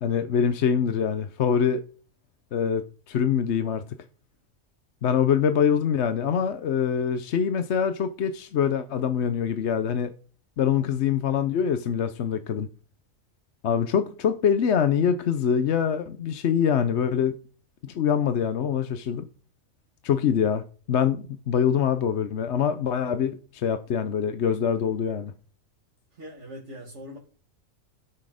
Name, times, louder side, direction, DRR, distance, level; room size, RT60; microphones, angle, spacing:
voice 1, 0.0-1.8 2.5-3.8 5.0-10.1 10.6-12.7 13.6-17.3 17.9-19.3 20.0-25.3, left 7 dB, 60° left, 1.0 m, -24 dB
voice 2, 26.1-27.2, equal, 60° right, 2.1 m, -41 dB
12.5 x 6.2 x 5.0 m
omnidirectional pair, 1.4 m